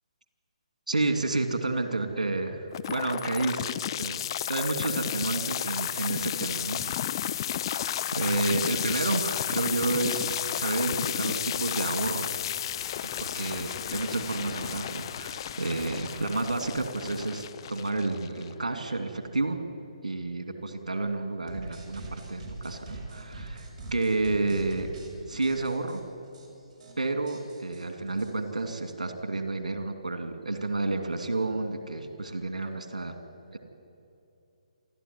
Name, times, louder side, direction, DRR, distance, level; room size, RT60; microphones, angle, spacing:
voice 1, 0.9-7.0 8.1-12.3 13.0-19.6 20.0-24.9 25.3-26.0 27.0-33.1 33.5-33.6, right 2 dB, 75° right, 6 dB, 2.6 m, -30 dB
sound 1, 2.7-18.7, left 10 dB, 40° left, 0.8 m, -32 dB
sound 2, 2.7-3.6 4.6-4.8 6.1-6.3 7.3-7.9, equal, 5° right, 2.6 m, -50 dB
sound 3, 21.5-25.1 25.4-26.0 26.3-26.5 26.7-26.9 27.3-29.0, right 2 dB, 35° right, 6.8 m, -42 dB
27.5 x 13.0 x 9.7 m, 2.7 s
figure-of-eight pair, 140°, 4 cm